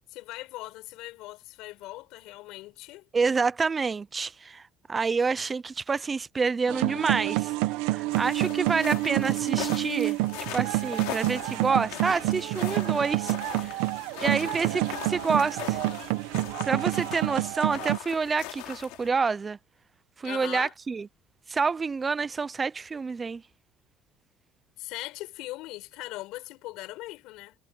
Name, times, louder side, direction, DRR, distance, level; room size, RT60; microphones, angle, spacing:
voice 1, 0.1-3.0 20.2-20.7 24.8-27.6, left 19 dB, 60° left, 6.4 m, -40 dB
voice 2, 3.1-4.6 4.9-7.5 7.9-10.2 10.5-13.8 14.2-15.8 16.6-19.6 20.2-21.1 21.5-23.4, right 4 dB, 15° right, 0.3 m, -28 dB
sound 1, 6.7-18.0, right 19 dB, 85° right, 1.1 m, -28 dB
sound 2, 8.1-19.1, left 21 dB, 80° left, 3.1 m, -41 dB
cardioid pair, 170°, 0 cm